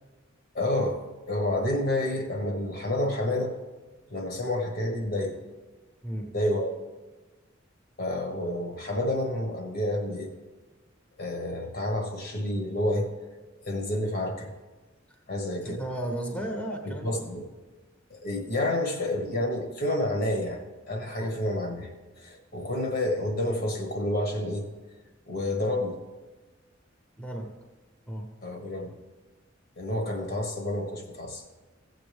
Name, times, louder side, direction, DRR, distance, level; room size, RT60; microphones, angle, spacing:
voice 1, 0.5-3.5 4.1-5.4 6.3-6.8 8.0-10.3 11.2-13.1 13.6-14.5 15.3-15.8 16.3-16.4 16.8-17.5 18.1-20.6 20.9-21.9 22.2-24.7 25.3-26.0 28.4-28.9 29.8-31.4, left 1 dB, 55° left, 2 dB, 1.4 m, -29 dB
voice 2, 15.6-17.2 21.2-21.4 27.2-27.5 28.1-28.3, right 1 dB, 5° left, 2 dB, 1.1 m, -34 dB
15.0 x 8.0 x 3.5 m, 1.2 s
head